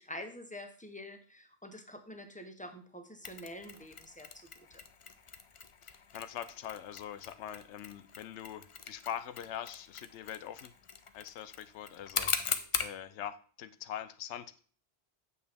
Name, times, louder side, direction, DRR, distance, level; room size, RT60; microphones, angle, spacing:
voice 1, 0.0-4.8, left 1 dB, 10° left, 6 dB, 0.8 m, -47 dB
Mechanisms, 3.2-13.0, left 6 dB, 45° left, 0.4 m, -40 dB
voice 2, 5.8-10.7 11.1-14.6, left 10 dB, 90° left, 12 dB, 0.9 m, -43 dB
8.5 x 6.9 x 3.4 m, 0.43 s
omnidirectional pair, 1.1 m